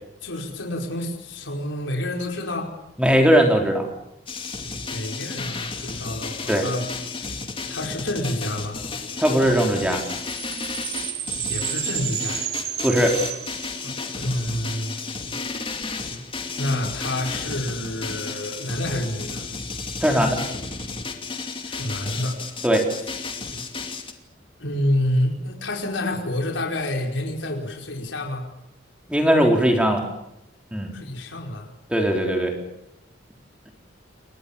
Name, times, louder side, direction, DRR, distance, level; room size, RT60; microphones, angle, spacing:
voice 1, 0.2-2.7 4.8-6.8 7.1-7.3 7.7-8.8 11.5-12.5 13.8-15.0 16.6-19.5 21.6-22.4 23.0-23.5 24.6-28.5 30.9-31.7, left 1 dB, 85° left, 1 dB, 5.0 m, -28 dB
voice 2, 3.0-3.9 6.5-6.6 9.2-10.0 12.8-13.2 20.0-20.4 22.6-22.9 29.1-30.0 30.7-30.9 31.9-32.5, equal, 5° right, 2 dB, 4.1 m, -19 dB
sound 1, 4.3-24.1, left 4 dB, 30° left, 2.5 m, -33 dB
sound 2, 9.6-14.2, right 11 dB, 55° right, 2.4 m, -32 dB
29.0 x 22.5 x 7.2 m, 0.83 s
head